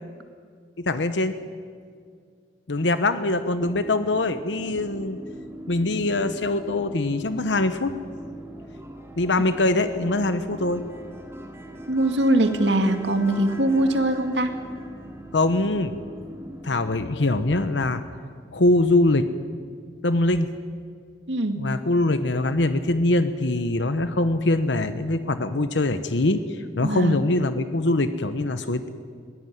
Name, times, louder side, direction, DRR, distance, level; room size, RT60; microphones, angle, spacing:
voice 1, 0.8-1.4 2.7-5.2 5.7-7.9 9.2-10.8 15.3-16.0 16.6-18.0 18.5-19.3 20.0-20.5 21.6-28.9, left 2 dB, 85° left, 10 dB, 1.0 m, -23 dB
sound 1, 3.6-17.3, right 1 dB, 15° right, 2.8 m, -41 dB
voice 2, 11.9-14.5 21.3-21.6 26.8-27.2, right 1 dB, 75° right, 6 dB, 2.3 m, -22 dB
22.0 x 17.5 x 9.3 m, 2.1 s
head